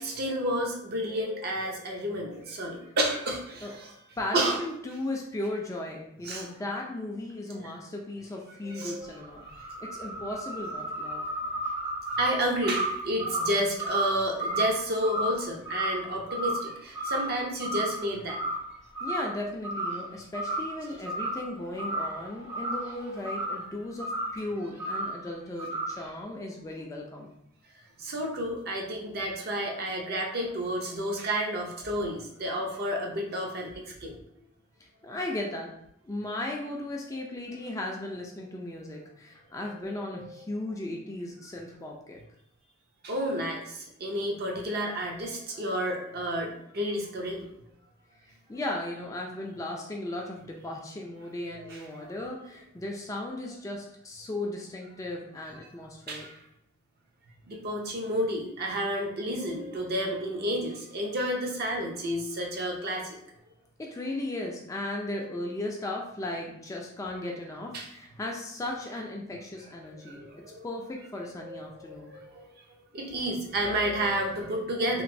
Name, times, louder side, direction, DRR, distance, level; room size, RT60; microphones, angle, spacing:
voice 1, 0.0-3.9 4.3-4.6 6.2-6.5 7.6-7.7 8.7-9.1 11.1-11.5 12.2-18.4 28.0-34.1 40.2-40.4 43.0-47.5 51.6-52.1 56.1-56.3 57.5-63.2 67.7-67.9 70.1-70.7 71.4-72.5 72.9-75.0, right 1 dB, 45° right, 0 dB, 0.5 m, -31 dB
voice 2, 4.2-11.2 19.0-27.3 35.0-35.7 36.0-42.2 48.2-56.3 63.8-70.2 70.6-72.1, left 1 dB, 15° left, 0 dB, 0.3 m, -36 dB
sound 1, 9.0-16.7 16.9-17.4 17.6-18.7 18.9-19.3 19.6-20.1 20.3-21.5 21.7-23.7 24.0-24.4 24.8-25.2 25.6-26.1, right 1 dB, 80° right, 1.5 m, -32 dB
3.0 x 2.5 x 2.6 m, 0.75 s
head